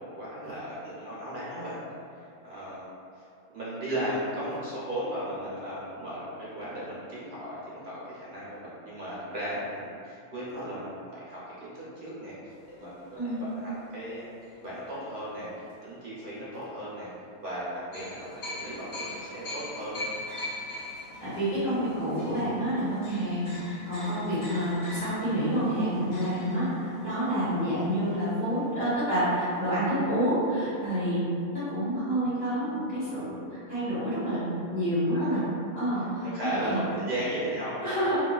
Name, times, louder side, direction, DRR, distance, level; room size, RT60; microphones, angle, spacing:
voice 1, 0.0-1.8 2.1-2.9 3.2-3.3 3.5-12.3 12.7-14.3 14.6-17.1 17.4-20.0 35.1-35.4 36.0-38.0, right 1 dB, 50° right, -9 dB, 0.6 m, -36 dB
sound 1, 12.5-15.0 15.5-15.7 17.9-28.7 29.0-29.1 29.3-29.5, left 2 dB, 75° left, 1.1 m, -42 dB
voice 2, 21.2-31.2 31.5-35.4 35.7-36.8 37.8-38.3, equal, 35° left, -16 dB, 1.7 m, -28 dB
3.0 x 2.3 x 2.3 m, 2.5 s
omnidirectional pair, 1.4 m